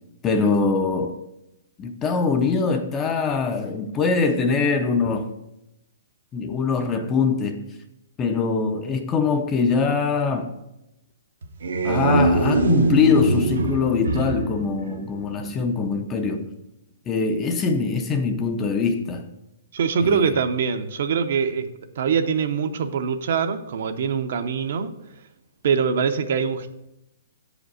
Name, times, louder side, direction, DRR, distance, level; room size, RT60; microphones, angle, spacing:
voice 1, 0.2-1.2 1.8-5.3 6.3-7.7 8.2-10.5 11.8-16.5 17.1-19.3 20.0-20.4, left 5 dB, 15° left, 0.4 m, -23 dB
sound 1, 11.4-15.6, right 2 dB, 75° right, 0.9 m, -23 dB
voice 2, 19.7-21.7 22.0-24.9 25.6-26.7, right 6 dB, 50° right, 0.6 m, -23 dB
7.4 x 5.0 x 6.3 m
hypercardioid pair, 175°, 0 cm